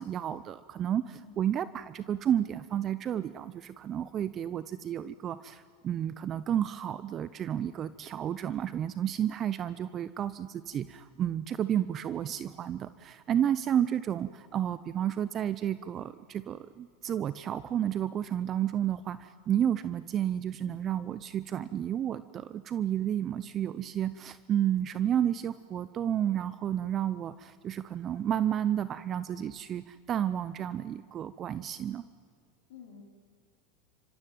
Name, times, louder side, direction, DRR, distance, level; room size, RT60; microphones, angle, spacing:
voice 1, 0.0-32.0, right 10 dB, 35° right, 15 dB, 0.7 m, -31 dB
voice 2, 1.2-1.7 10.6-10.7 32.7-33.0, left 7 dB, 75° left, 3 dB, 4.3 m, -52 dB
29.5 x 15.5 x 9.3 m, 2.2 s
hypercardioid pair, 100°, 0 cm